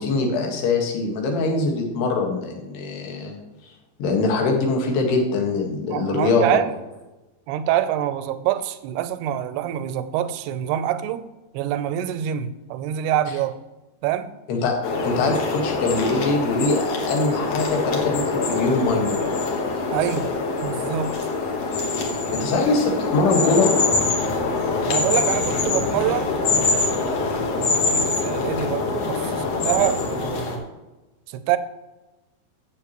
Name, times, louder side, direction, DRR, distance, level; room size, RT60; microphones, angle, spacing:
voice 1, 0.0-3.4 4.0-6.5 14.5-14.7 15.0-19.2 22.0-23.7, left 3 dB, 85° left, 1 dB, 3.8 m, -23 dB
voice 2, 5.9-6.7 7.5-11.3 11.5-13.6 14.0-14.4 19.9-20.3 20.6-21.1 24.9-27.2 27.6-30.7 31.3-31.6, right 11 dB, 85° right, 12 dB, 2.6 m, -26 dB
sound 1, 14.8-30.6, left 3 dB, 60° left, 1.8 m, -24 dB
14.0 x 7.9 x 3.0 m, 1.1 s
omnidirectional pair, 4.6 m